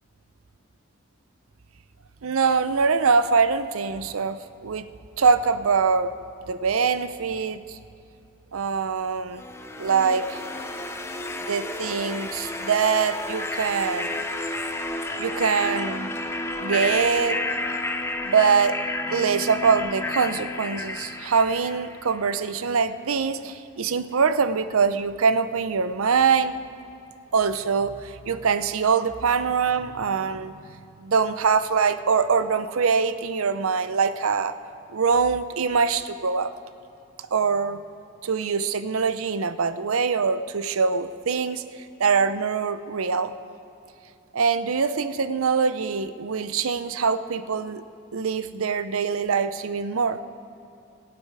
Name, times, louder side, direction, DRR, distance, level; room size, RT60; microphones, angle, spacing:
voice 1, 2.2-4.9 5.2-6.1 6.5-7.8 8.5-9.4 9.8-10.4 11.5-14.2 15.2-16.1 16.6-17.4 18.2-18.8 19.1-26.6 27.3-30.6 31.0-34.6 34.9-36.5 37.3-37.8 38.2-41.6 42.0-43.3 44.3-47.8 48.1-50.2, right 5 dB, 80° right, 12 dB, 0.6 m, -23 dB
sound 1, 9.4-22.3, left 2 dB, 10° left, 0.5 m, -31 dB
22.0 x 8.6 x 4.8 m, 2.7 s
head